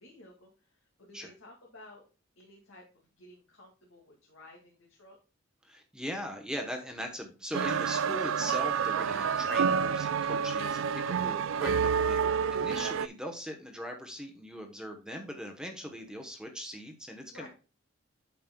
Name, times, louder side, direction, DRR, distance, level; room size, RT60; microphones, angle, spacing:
voice 1, 0.0-2.1 2.4-5.2 11.8-12.5 17.3-17.5, left 1 dB, 80° left, -2 dB, 2.0 m, -54 dB
voice 2, 5.6-12.2 12.5-17.5, equal, 5° right, 4 dB, 0.9 m, -40 dB
sound 1, 7.5-13.1, right 6 dB, 70° right, 0.3 m, -29 dB
9.1 x 6.6 x 2.2 m, 0.33 s
head